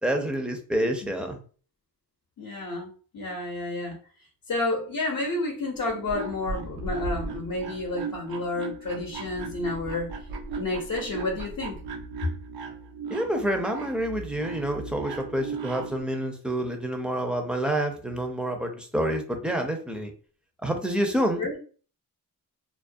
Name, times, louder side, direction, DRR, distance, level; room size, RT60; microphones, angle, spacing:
voice 1, 0.0-1.4 13.1-20.1 20.6-21.6, right 1 dB, 5° right, 4 dB, 0.4 m, -28 dB
voice 2, 2.4-4.0 4.5-10.1 10.5-11.8 21.4-21.6, left 2 dB, 55° left, 0 dB, 0.7 m, -30 dB
sound 1, 5.8-16.0, right 4 dB, 85° right, 0.5 m, -37 dB
2.3 x 2.1 x 2.5 m, 0.40 s
cardioid pair, 85°, 37 cm